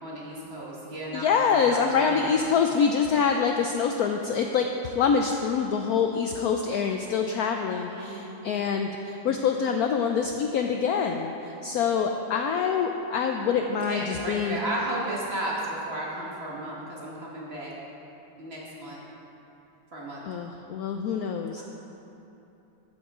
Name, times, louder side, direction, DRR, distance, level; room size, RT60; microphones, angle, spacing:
voice 1, 0.0-2.3 7.9-8.5 13.8-17.7 18.4-19.0 19.9-20.2 21.6-21.7, right 1 dB, 35° right, -5 dB, 2.0 m, -34 dB
voice 2, 1.1-14.6 20.2-21.6, left 6 dB, 75° left, 4 dB, 0.9 m, -25 dB
14.0 x 9.3 x 3.7 m, 2.9 s
omnidirectional pair, 2.0 m